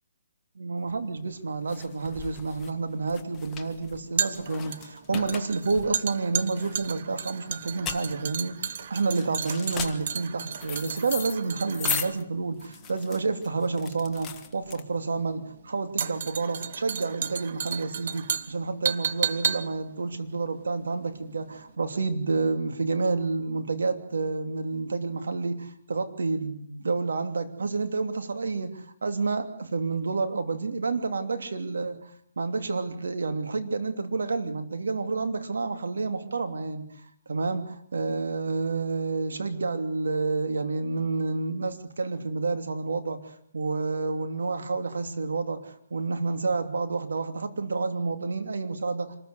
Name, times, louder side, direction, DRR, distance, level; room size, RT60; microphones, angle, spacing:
voice 1, 0.6-36.9 37.3-49.2, right 3 dB, 80° right, 8 dB, 2.9 m, -29 dB
sound 1, 0.9-15.3, left 7 dB, 15° left, 1.4 m, -38 dB
sound 2, 2.0-21.3 21.6-21.7, right 7 dB, 55° right, 1.0 m, -34 dB
26.0 x 14.5 x 8.2 m, 0.67 s
hypercardioid pair, 155°, 0 cm